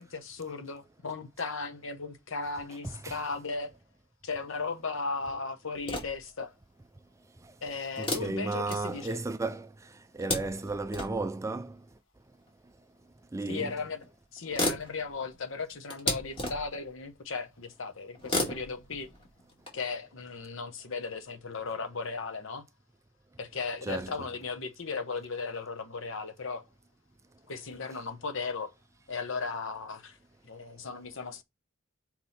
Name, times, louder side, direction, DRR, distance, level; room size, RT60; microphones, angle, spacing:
voice 1, 0.0-3.7 4.2-6.5 7.6-9.2 13.5-14.0 14.3-19.1 19.7-22.6 23.4-26.6 27.5-28.7 29.1-30.2 30.4-31.4, left 4 dB, 65° left, 0.9 m, -36 dB
voice 2, 2.8-3.2 8.0-9.7 10.1-11.8 13.3-13.7 23.8-24.3, right 3 dB, 15° right, 0.4 m, -34 dB
sound 1, 5.7-6.4 8.0-9.3 9.9-11.3 12.5-12.6 13.7-13.8 14.0-14.1 14.4-16.9 18.1-19.7, left 1 dB, 25° left, 2.0 m, -35 dB
6.1 x 4.4 x 4.1 m
head